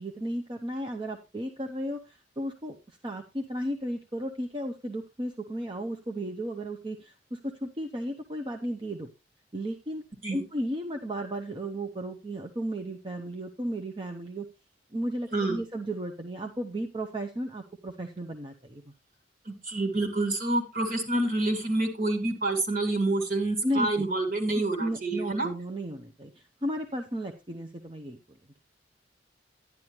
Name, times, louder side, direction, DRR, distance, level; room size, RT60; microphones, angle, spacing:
voice 1, 0.0-9.1 9.5-10.0 10.3-14.5 14.9-18.9 23.6-24.0 24.8-28.4, right 1 dB, 25° right, 4 dB, 0.8 m, -34 dB
voice 2, 19.5-25.5, right 2 dB, 50° right, 5 dB, 2.4 m, -28 dB
11.0 x 10.5 x 3.0 m, 0.27 s
head